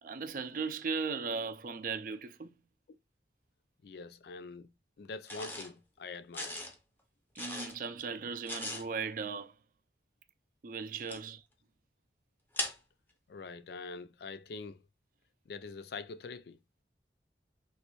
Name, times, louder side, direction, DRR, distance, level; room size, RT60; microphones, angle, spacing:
voice 1, 0.0-2.5 7.4-9.5 10.6-11.4, right 5 dB, 50° right, 0.4 m, -37 dB
voice 2, 3.8-4.7 5.0-6.6 11.0-11.2 13.3-14.8 15.5-16.6, left 4 dB, 65° left, 0.4 m, -44 dB
sound 1, 5.3-5.7 6.3-6.8 7.3-7.8 8.5-8.9 11.0-11.2 12.5-12.8, left 1 dB, 10° left, 0.5 m, -38 dB
3.1 x 2.6 x 3.0 m
head